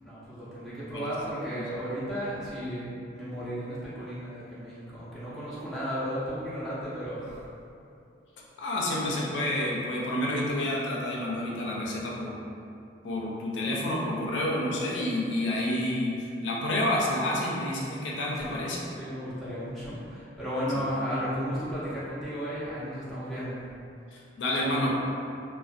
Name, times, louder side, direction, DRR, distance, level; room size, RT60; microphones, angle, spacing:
voice 1, 0.0-7.4 18.3-23.6, equal, ahead, -12 dB, 0.5 m, -34 dB
voice 2, 8.6-12.3 13.0-18.8 20.7-20.8 24.1-25.0, left 1 dB, 80° left, -4 dB, 0.4 m, -29 dB
2.4 x 2.1 x 2.5 m, 2.5 s
head